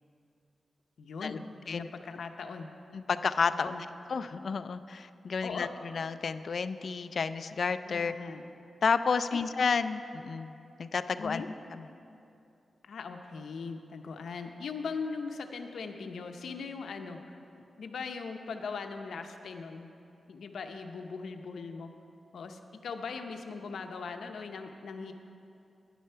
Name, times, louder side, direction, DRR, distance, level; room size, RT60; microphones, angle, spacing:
voice 1, 1.0-2.7 3.5-3.8 5.4-5.7 7.9-8.5 9.3-9.4 11.2-11.5 12.8-19.9 20.3-21.9 22.3-25.1, left 5 dB, 90° left, 5 dB, 0.7 m, -40 dB
voice 2, 2.9-3.7 4.1-8.1 8.8-10.5 10.8-11.4, left 5 dB, 60° left, 12 dB, 0.4 m, -31 dB
10.5 x 10.0 x 5.6 m, 2.7 s
wide cardioid pair, 125°, 0 cm